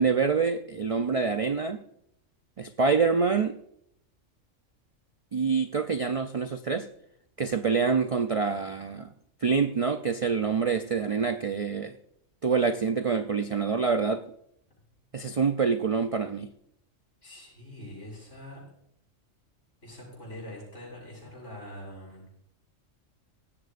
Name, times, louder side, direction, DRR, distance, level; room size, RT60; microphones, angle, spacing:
voice 1, 0.0-1.8 2.6-3.5 5.3-6.9 7.4-9.1 9.4-12.0 12.4-14.2 15.1-16.5, right 5 dB, 65° right, 0.3 m, -26 dB
voice 2, 17.2-18.7 19.8-22.3, left 1 dB, 70° left, 7.2 m, -44 dB
17.5 x 14.5 x 2.5 m
omnidirectional pair, 1.3 m